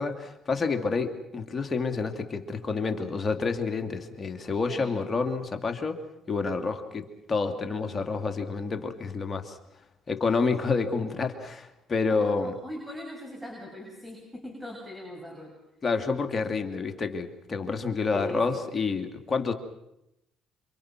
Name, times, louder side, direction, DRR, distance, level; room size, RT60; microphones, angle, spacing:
voice 1, 0.0-6.0 6.3-9.6 10.1-12.5 15.8-19.5, left 4 dB, 35° left, 5 dB, 2.9 m, -29 dB
voice 2, 12.1-15.5 18.1-18.7, left 1 dB, 5° right, 0 dB, 7.6 m, -41 dB
28.5 x 26.0 x 6.1 m, 0.87 s
supercardioid pair, 75°, 0 cm